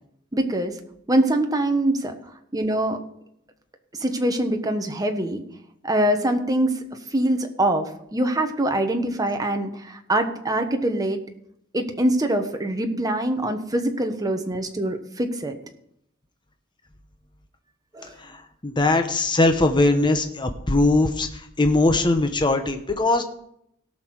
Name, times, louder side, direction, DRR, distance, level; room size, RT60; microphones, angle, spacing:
voice 1, 0.3-0.8 1.1-2.2 2.5-3.0 4.0-5.4 5.8-6.8 7.1-11.2 11.7-15.5 17.9-18.1, right 1 dB, 20° right, 5 dB, 1.1 m, -24 dB
voice 2, 18.6-21.3 21.6-23.2, left 2 dB, 20° left, 6 dB, 0.8 m, -20 dB
17.5 x 6.3 x 4.7 m, 0.74 s
head